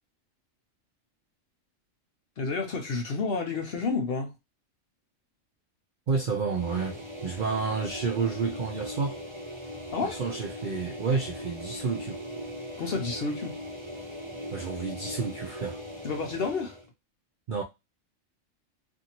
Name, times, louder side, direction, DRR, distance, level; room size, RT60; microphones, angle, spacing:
voice 1, 2.4-4.3 9.9-10.2 12.8-13.6 16.0-16.7, left 4 dB, 60° left, 0.7 m, -30 dB
voice 2, 6.1-9.2 10.2-12.2 14.5-15.8 17.5-17.6, right 4 dB, 60° right, 0.5 m, -30 dB
sound 1, 6.4-16.9, equal, 25° right, 0.7 m, -40 dB
2.6 x 2.6 x 2.8 m
omnidirectional pair, 1.4 m